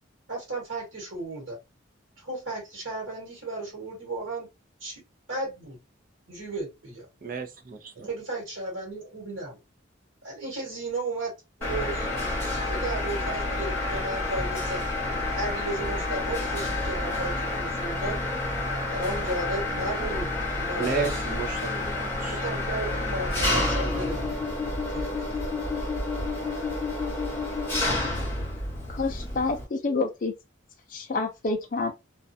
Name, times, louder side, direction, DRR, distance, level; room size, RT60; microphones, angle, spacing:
voice 1, 0.3-1.6 2.2-4.5 4.8-5.0 5.3-5.8 6.3-7.1 8.1-9.6 10.2-11.3 11.6-12.1 12.5-14.8 15.3-18.2 18.9-21.2 22.2-24.5 24.9-25.3, right 2 dB, 75° right, 1.3 m, -34 dB
voice 2, 7.2-8.1 20.8-21.9 22.2-22.4, right 5 dB, 45° right, 0.5 m, -32 dB
Mechanisms, 11.6-29.6, left 2 dB, 10° left, 1.0 m, -29 dB
voice 3, 28.9-30.3 30.9-31.9, left 3 dB, 40° left, 0.4 m, -28 dB
2.4 x 2.2 x 2.6 m
head